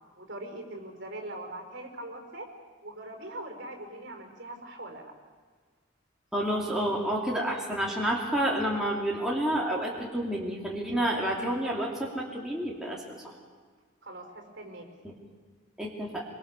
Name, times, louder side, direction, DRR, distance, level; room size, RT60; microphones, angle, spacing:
voice 1, 0.2-2.5 2.8-5.1 14.0-14.8, right 1 dB, 55° right, 3 dB, 5.1 m, -41 dB
voice 2, 6.3-13.2 15.8-16.2, right 1 dB, ahead, -4 dB, 2.8 m, -29 dB
24.5 x 24.0 x 7.0 m, 1.5 s
head